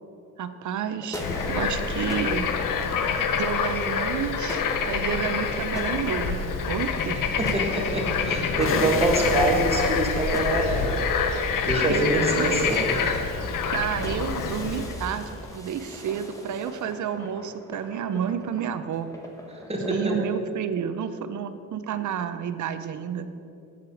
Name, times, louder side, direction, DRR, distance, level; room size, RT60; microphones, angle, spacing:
voice 1, 0.4-1.2 1.5-2.5 3.4-7.4 11.9-12.6 13.7-19.1 19.9-23.3, right 8 dB, 65° right, 11 dB, 0.7 m, -30 dB
sound 1, 0.8-20.3, equal, 10° left, 1.3 m, -40 dB
Bird / Frog, 1.2-14.9, left 6 dB, 80° left, 0.9 m, -27 dB
voice 2, 7.4-11.2 11.6-13.0 19.5-20.2, right 2 dB, 20° right, -1 dB, 1.8 m, -25 dB
sound 2, 8.7-15.6, left 6 dB, 40° left, 0.7 m, -38 dB
8.1 x 6.7 x 7.0 m, 2.7 s
cardioid pair, 125°, 32 cm